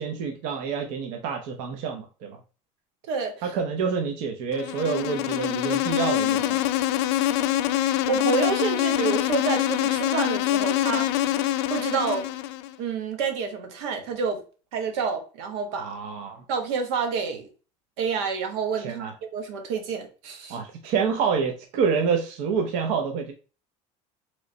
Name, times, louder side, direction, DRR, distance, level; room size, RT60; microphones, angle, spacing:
voice 1, 0.0-2.4 3.4-6.7 15.7-16.4 18.7-19.1 20.5-23.3, right 6 dB, 65° right, 0.7 m, -27 dB
Insect, 4.5-12.7, left 13 dB, 90° left, 0.4 m, -25 dB
voice 2, 8.1-11.4 11.7-12.3 12.8-14.4 14.7-16.0 16.5-17.5 18.0-20.6, right 5 dB, 90° right, 1.0 m, -28 dB
3.1 x 3.1 x 3.8 m
cardioid pair, 160°, 14 cm